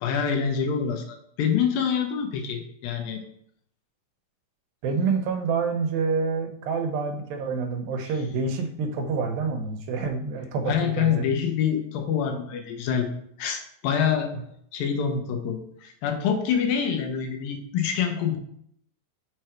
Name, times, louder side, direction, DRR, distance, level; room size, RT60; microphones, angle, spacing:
voice 1, 0.0-3.2 10.7-13.1 13.4-14.3 14.7-18.4, left 7 dB, 85° left, 4 dB, 2.6 m, -26 dB
voice 2, 4.8-11.3, right 4 dB, 85° right, 5 dB, 2.5 m, -27 dB
6.3 x 4.7 x 4.4 m, 0.67 s
omnidirectional pair, 4.2 m